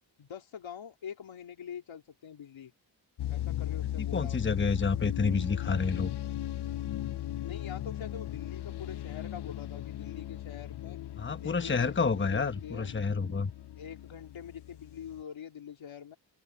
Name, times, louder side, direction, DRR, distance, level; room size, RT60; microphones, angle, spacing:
voice 1, 0.2-2.7 3.3-4.6 7.4-11.0 11.4-13.0 13.8-16.2, left 8 dB, 85° left, 3.1 m, -44 dB
sound 1, 3.2-15.2, left 13 dB, 60° left, 0.6 m, -37 dB
voice 2, 4.1-6.1 11.2-13.5, left 4 dB, 25° left, 1.1 m, -29 dB
open air
cardioid pair, 85°, 46 cm